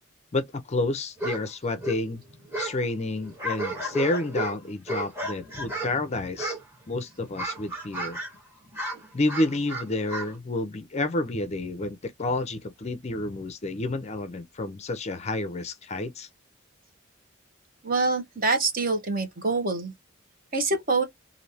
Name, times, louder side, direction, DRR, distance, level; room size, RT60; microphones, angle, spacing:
voice 1, 0.3-2.2 2.6-6.6 6.9-8.2 9.1-16.3, left 2 dB, 30° left, 0.5 m, -29 dB
sound 1, 1.2-1.4 1.7-2.8 3.2-6.0 6.4-6.9 7.2-8.4 8.7-10.3, right 1 dB, 10° right, 1.4 m, -33 dB
voice 2, 17.8-19.9 20.5-21.0, right 3 dB, 40° right, 1.1 m, -25 dB
3.1 x 2.6 x 2.7 m
head